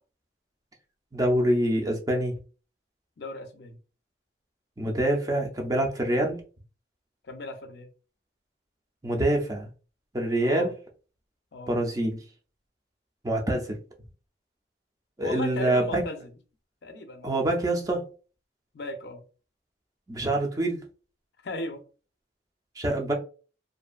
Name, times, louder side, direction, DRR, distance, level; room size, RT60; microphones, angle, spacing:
voice 1, 1.1-2.3 4.8-6.4 9.0-9.7 10.1-10.7 11.7-12.2 13.2-13.8 15.2-16.0 17.2-18.1 20.1-20.8 22.8-23.1, right 1 dB, 20° right, 0.5 m, -25 dB
voice 2, 3.2-3.8 7.2-7.9 10.4-10.7 11.5-11.7 15.2-16.3 16.8-17.5 18.7-19.2 21.4-21.8, left 2 dB, 60° left, 0.5 m, -36 dB
2.6 x 2.3 x 2.4 m
head